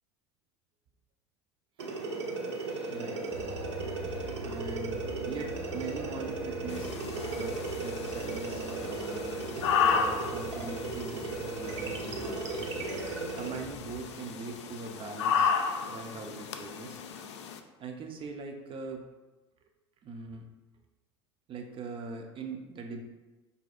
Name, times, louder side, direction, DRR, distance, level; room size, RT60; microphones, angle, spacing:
sound 1, 1.8-13.6, right 3 dB, 85° right, 0.7 m, -36 dB
voice 1, 2.9-3.2 4.4-9.5 9.8-12.7 13.3-15.6 15.9-17.0 17.8-19.0 20.0-20.4 21.5-23.0, right 4 dB, 35° right, 3 dB, 0.5 m, -42 dB
sound 2, 3.3-14.0, right 1 dB, 55° right, 1.0 m, -45 dB
sound 3, 6.7-17.6, left 6 dB, 80° left, 0.4 m, -33 dB
5.8 x 2.7 x 2.4 m, 1.1 s
hypercardioid pair, 85°, 15 cm